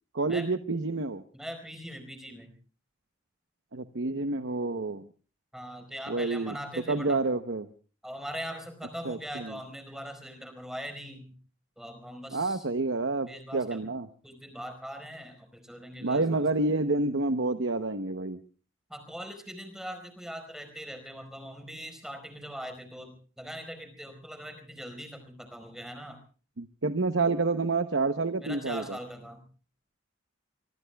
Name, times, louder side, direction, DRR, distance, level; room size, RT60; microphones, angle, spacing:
voice 1, 0.1-1.2 3.7-5.1 6.1-6.6 6.9-7.7 9.0-9.6 12.3-14.1 16.0-18.4 26.6-29.0, right 3 dB, 65° right, 9 dB, 0.9 m, -28 dB
voice 2, 1.3-2.5 5.5-7.3 8.0-11.4 11.8-12.6 13.3-13.8 14.2-16.4 18.9-26.2 28.4-29.5, equal, 5° right, 7 dB, 4.6 m, -41 dB
25.0 x 24.5 x 2.3 m, 0.39 s
head